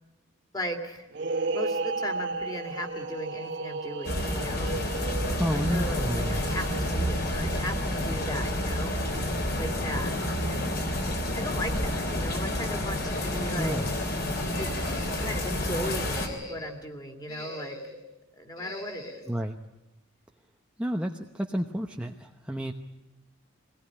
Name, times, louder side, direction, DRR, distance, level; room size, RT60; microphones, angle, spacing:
voice 1, 0.5-1.1 1.5-4.8 5.2-9.0 9.6-10.1 10.5-10.8 11.4-13.8 14.6-14.8 15.2-17.8 18.3-19.2, equal, 20° left, 5 dB, 2.7 m, -37 dB
sound 1, 1.1-9.7, right 3 dB, 55° right, 1.5 m, -35 dB
sound 2, 4.0-16.3, left 1 dB, 50° left, 3.7 m, -29 dB
voice 2, 5.4-6.4 13.6-13.9 19.3-19.6 20.8-22.7, equal, 5° right, 2 dB, 0.9 m, -30 dB
sound 3, 13.0-13.9 14.5-15.5 15.9-16.8 17.3-18.0 18.6-19.2, left 1 dB, 80° left, 7.5 m, -42 dB
23.5 x 19.0 x 10.0 m, 0.99 s
head